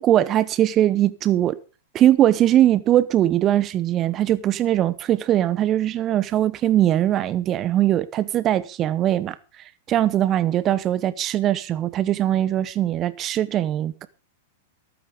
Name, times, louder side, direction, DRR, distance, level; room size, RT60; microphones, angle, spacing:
voice 1, 0.0-1.6 1.9-9.4 9.9-14.1, right 12 dB, 30° right, 0.8 m, -20 dB
14.0 x 12.0 x 5.0 m
hypercardioid pair, 100°, 0 cm